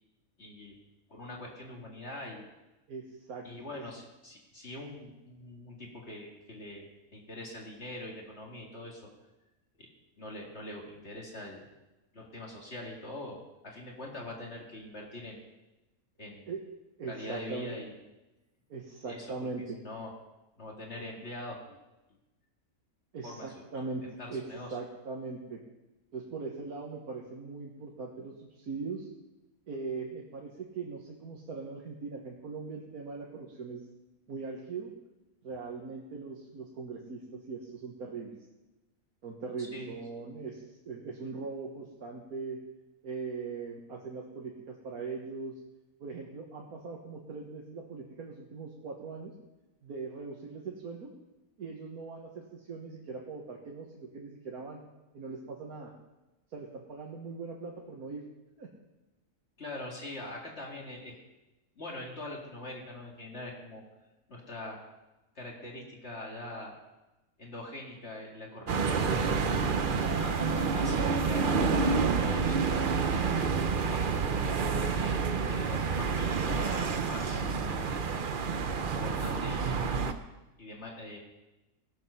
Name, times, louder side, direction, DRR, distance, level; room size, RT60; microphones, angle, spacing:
voice 1, 0.4-0.8 1.1-2.5 3.4-6.8 7.1-9.1 9.8-9.9 10.2-11.7 12.1-15.4 16.2-16.5 17.1-17.9 19.1-19.5 19.8-20.1 20.6-21.8 23.2-23.5 24.0-24.7 39.6-39.9 59.6-61.2 61.8-63.8 64.3-64.8 65.4-66.7 67.4-69.7 70.1-73.3 73.9-74.3 74.9-77.5 77.9-78.3 78.9-80.0 80.6-81.2, left 1 dB, 50° left, -2 dB, 2.3 m, -43 dB
voice 2, 2.9-3.9 16.5-16.6 17.0-17.8 18.7-19.8 23.1-24.0 24.3-24.4 24.7-25.6 26.1-29.1 29.7-33.8 34.3-34.9 35.4-38.4 39.2-42.6 43.0-45.6 46.0-49.3 49.8-51.1 51.6-54.8 55.1-55.9 56.5-58.2 58.6-58.7, right 4 dB, 90° right, -1 dB, 1.9 m, -40 dB
sound 1, 68.7-80.1, right 5 dB, 45° right, 0.8 m, -28 dB
18.5 x 7.6 x 5.6 m, 1.0 s
omnidirectional pair, 1.5 m